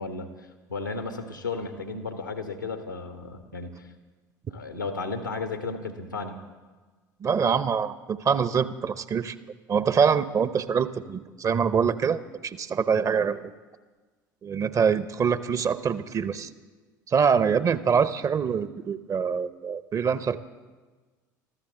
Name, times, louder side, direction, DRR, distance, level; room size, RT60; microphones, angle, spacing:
voice 1, 0.0-3.9 4.5-6.4, left 3 dB, 85° left, 7 dB, 1.3 m, -34 dB
voice 2, 7.2-9.3 9.7-13.4 14.4-16.5 17.1-20.4, right 6 dB, 35° right, 15 dB, 0.8 m, -24 dB
24.5 x 14.0 x 3.8 m, 1.3 s
figure-of-eight pair, 60°, 10 cm